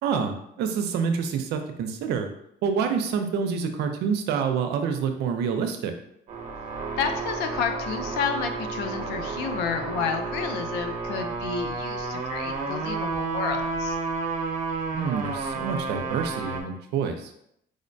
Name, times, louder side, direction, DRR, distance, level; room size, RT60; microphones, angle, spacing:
voice 1, 0.0-2.3 2.6-5.9 14.9-17.3, right 6 dB, 80° right, 7 dB, 0.5 m, -27 dB
sound 1, 6.3-16.6, right 3 dB, 45° right, 0.8 m, -31 dB
voice 2, 7.0-14.0, left 6 dB, 90° left, 7 dB, 0.5 m, -30 dB
4.9 x 2.1 x 2.6 m, 0.74 s
cardioid pair, 110°, 17 cm